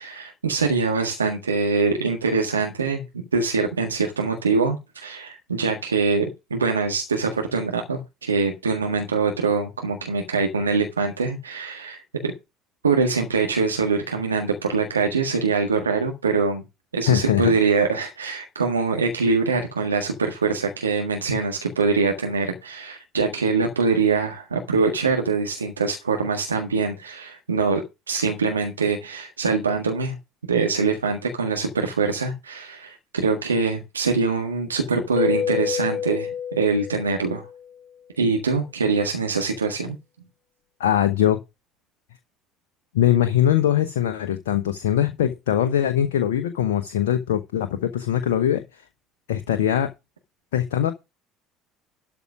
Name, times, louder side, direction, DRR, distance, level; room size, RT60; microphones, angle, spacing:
voice 1, 0.0-3.0 3.3-12.3 12.8-16.6 16.9-30.1 30.5-37.4 38.2-40.0, right 4 dB, 85° right, 1.6 m, -23 dB
voice 2, 17.1-17.5 40.8-41.4 42.9-48.6 49.3-49.9 50.5-50.9, left 10 dB, 75° left, 1.0 m, -21 dB
Keyboard (musical), 35.2-37.7, left 8 dB, 40° left, 1.3 m, -28 dB
12.5 x 4.8 x 6.2 m
figure-of-eight pair, 60°, 0 cm